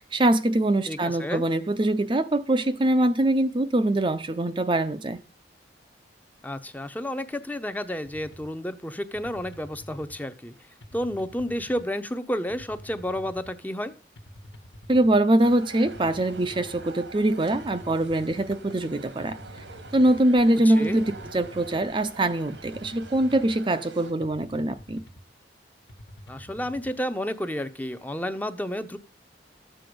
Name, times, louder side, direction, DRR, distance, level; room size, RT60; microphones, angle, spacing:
voice 1, 0.0-5.2 14.9-19.4 19.9-25.0, right 1 dB, 30° right, 0.5 m, -23 dB
voice 2, 0.9-1.4 6.4-10.5 10.9-13.9 20.6-21.0 26.3-29.0, equal, 10° left, 0.7 m, -31 dB
sound 1, 8.0-8.5 9.1-10.2 10.8-11.8 12.5-13.5 14.2-15.2 15.8-16.9 17.5-18.5 19.2-20.2 20.9-21.9 22.5-23.6 24.2-25.2 25.9-26.9, equal, 75° left, 1.4 m, -47 dB
sound 2, 15.4-24.1, right 3 dB, 85° right, 1.5 m, -45 dB
13.0 x 7.8 x 5.1 m
head